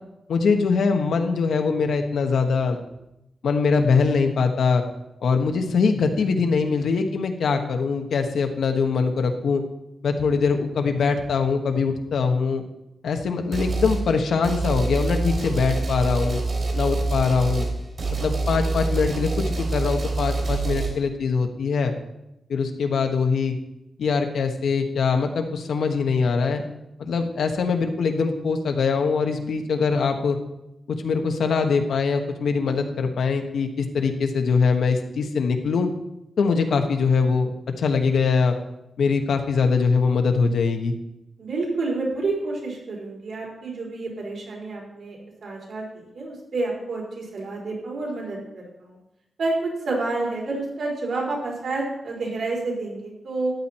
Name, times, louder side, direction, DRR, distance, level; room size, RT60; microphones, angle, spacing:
voice 1, 0.3-2.8 3.4-4.8 5.2-9.6 10.0-12.6 13.0-16.4 16.7-17.6 18.2-21.9 22.5-23.6 24.0-26.6 27.0-30.4 30.9-35.9 36.4-37.5 37.8-38.6 39.0-40.9, left 5 dB, 80° left, 5 dB, 1.3 m, -22 dB
sound 1, 13.5-14.0 14.4-20.9, right 3 dB, 45° right, 3.2 m, -26 dB
voice 2, 41.4-45.8 46.1-49.0 49.4-53.5, right 3 dB, 65° right, -3 dB, 4.4 m, -29 dB
13.5 x 9.5 x 4.3 m, 0.88 s
wide cardioid pair, 160°, 0 cm